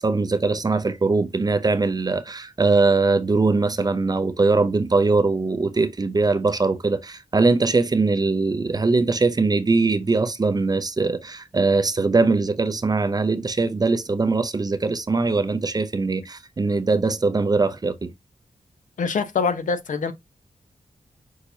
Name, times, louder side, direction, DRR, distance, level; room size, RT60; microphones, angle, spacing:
voice 1, 0.0-18.1, right 3 dB, 30° right, 0.5 m, -21 dB
voice 2, 19.0-20.1, left 5 dB, 75° left, 0.7 m, -24 dB
6.1 x 2.8 x 2.7 m
wide cardioid pair, 95°, 13 cm